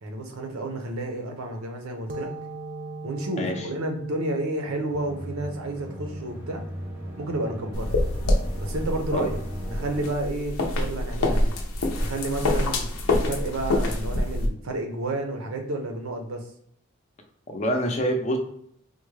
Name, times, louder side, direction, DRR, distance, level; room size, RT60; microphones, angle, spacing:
voice 1, 0.0-2.3 3.0-6.6 7.2-8.0 8.6-9.4 9.7-11.5 12.0-12.9 13.1-16.4, right 2 dB, 75° right, 4 dB, 0.7 m, -31 dB
sound 1, 2.1-9.4, right 2 dB, 40° right, 0.3 m, -41 dB
sound 2, 4.9-10.1, equal, 10° right, 0.7 m, -38 dB
sound 3, 7.7-14.5, left 1 dB, 75° left, 0.6 m, -26 dB
voice 2, 17.5-18.4, equal, 35° left, 3 dB, 0.5 m, -25 dB
3.5 x 2.2 x 3.2 m, 0.69 s
head